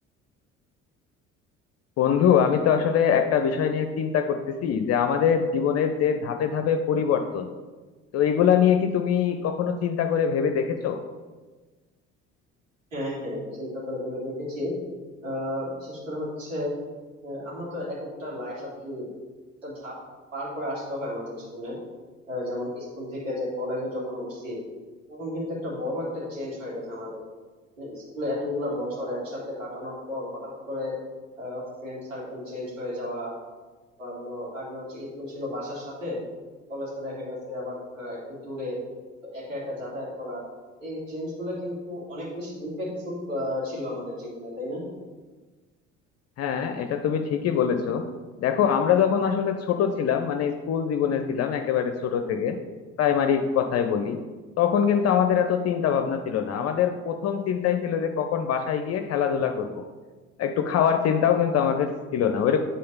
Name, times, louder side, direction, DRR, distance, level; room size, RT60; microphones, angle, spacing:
voice 1, 2.0-7.5 8.1-11.0 46.4-48.0 48.4-52.6 53.0-54.2 54.6-59.8 60.4-62.6, left 8 dB, 40° left, 6 dB, 0.6 m, -23 dB
voice 2, 12.9-14.7 15.2-16.7 17.2-19.1 19.6-20.0 20.3-21.8 22.3-24.6 25.1-27.2 27.8-30.9 31.4-33.3 34.0-36.2 36.7-38.8 39.2-40.4 40.8-44.8, left 1 dB, 85° right, -6 dB, 2.5 m, -33 dB
8.5 x 3.7 x 5.5 m, 1.3 s
figure-of-eight pair, 55°, 38 cm